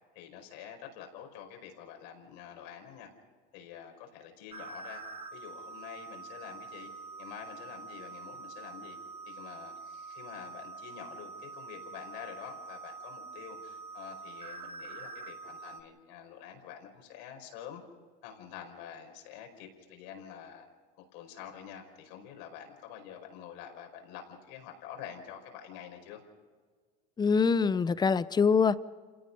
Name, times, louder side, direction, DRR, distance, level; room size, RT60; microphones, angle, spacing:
voice 1, 0.1-3.1 3.5-5.0 5.3-6.9 7.2-9.0 9.3-17.8 18.2-20.7 21.0-26.2, left 8 dB, 80° left, 5.1 m, -47 dB
sound 1, 4.5-15.8, right 4 dB, 25° right, 1.6 m, -45 dB
voice 2, 27.2-28.8, left 5 dB, 20° left, 0.7 m, -24 dB
28.5 x 17.5 x 5.4 m
supercardioid pair, 100°, 21 cm